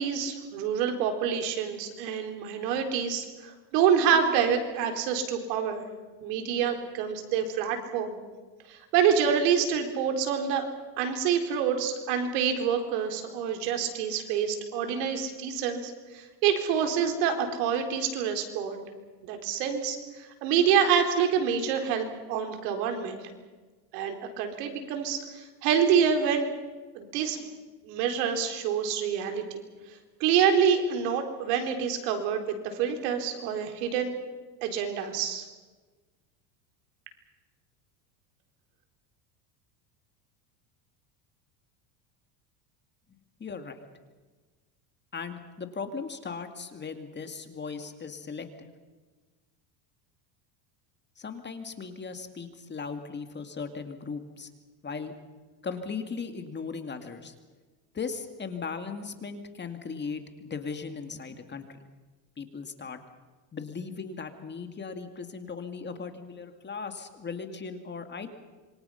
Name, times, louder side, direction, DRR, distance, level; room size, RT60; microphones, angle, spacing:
voice 1, 0.0-5.8 6.2-8.2 8.7-10.7 11.0-18.8 19.3-23.2 23.9-26.5 26.9-27.5 27.8-29.6 30.2-34.1 34.6-35.5, right 7 dB, 80° right, 5 dB, 4.1 m, -27 dB
voice 2, 43.4-43.8 45.1-48.7 51.2-54.5 54.8-55.1 55.6-57.3 57.9-61.7 62.4-63.0 63.5-68.3, left 5 dB, 20° left, 7 dB, 2.2 m, -37 dB
27.0 x 23.5 x 5.8 m, 1.3 s
supercardioid pair, 120°, 48 cm